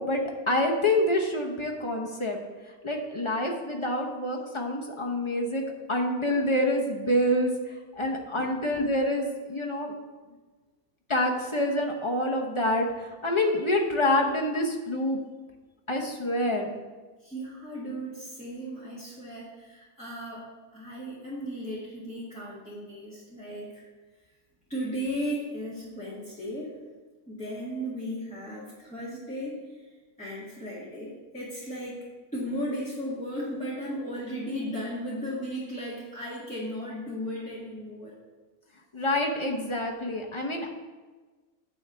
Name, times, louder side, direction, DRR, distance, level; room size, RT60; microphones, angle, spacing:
voice 1, 0.0-2.4 2.8-9.9 11.1-15.2 15.9-16.7 38.9-40.7, left 1 dB, 30° left, 0 dB, 0.6 m, -27 dB
voice 2, 17.2-23.9 24.7-26.7 27.3-29.8 30.2-32.0 32.3-38.1, equal, 5° left, -9 dB, 1.6 m, -36 dB
9.5 x 3.5 x 6.7 m, 1.3 s
omnidirectional pair, 1.6 m